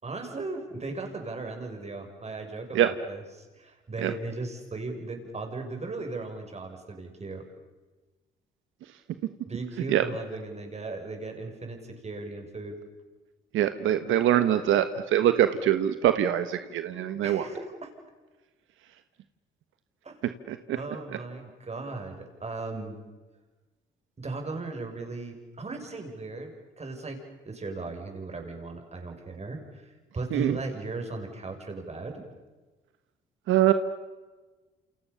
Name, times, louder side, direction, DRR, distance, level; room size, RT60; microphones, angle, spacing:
voice 1, 0.0-7.4 9.5-12.8 17.2-17.9 20.0-20.2 20.7-23.0 24.2-32.2, right 3 dB, 35° right, 4 dB, 6.8 m, -37 dB
voice 2, 13.5-17.4 20.5-20.8 30.3-30.6 33.5-33.7, right 11 dB, 85° right, 10 dB, 1.3 m, -23 dB
29.0 x 28.5 x 7.0 m, 1.2 s
cardioid pair, 90°, 20 cm